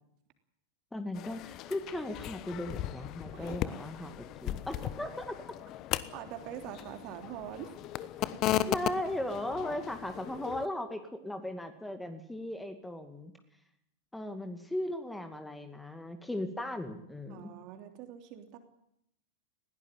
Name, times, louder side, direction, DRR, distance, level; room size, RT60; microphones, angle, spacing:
voice 1, 0.9-5.3 8.6-13.3 14.1-17.5, left 1 dB, 5° left, 8 dB, 2.3 m, -37 dB
sound 1, 1.1-10.7, left 13 dB, 35° left, 1.1 m, -37 dB
voice 2, 6.1-7.8 17.3-18.6, right 11 dB, 40° right, 6 dB, 3.2 m, -44 dB
20.5 x 17.5 x 9.2 m, 0.76 s
figure-of-eight pair, 90°, 0 cm